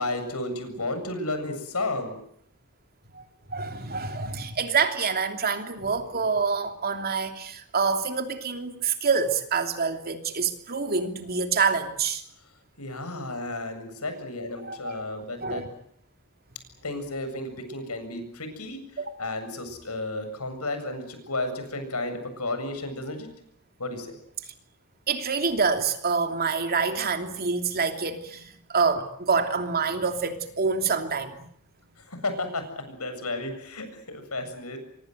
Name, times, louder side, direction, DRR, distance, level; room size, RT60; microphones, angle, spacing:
voice 1, 0.0-2.2 12.8-15.6 16.8-23.3 23.8-24.2 32.0-34.8, left 2 dB, 80° left, 7.7 m, -33 dB
voice 2, 3.5-12.2 14.6-15.1 15.4-15.6 19.0-19.1 25.1-31.5, right 5 dB, 45° right, 3.1 m, -26 dB
27.0 x 24.5 x 8.0 m
head